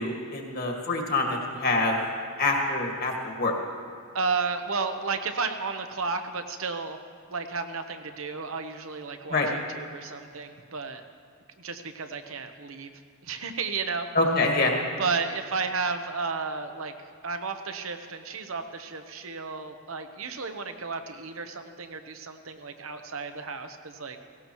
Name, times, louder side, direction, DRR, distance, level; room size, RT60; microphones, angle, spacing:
voice 1, 0.0-2.0 2.4-3.6 9.3-9.5 14.1-14.7, left 2 dB, 45° left, 0 dB, 1.9 m, -25 dB
voice 2, 4.1-7.0 7.3-11.0 11.6-12.9 13.2-14.1 15.0-16.9 17.2-24.2, right 4 dB, 65° right, 7 dB, 1.0 m, -33 dB
17.5 x 17.5 x 3.1 m, 2.4 s
head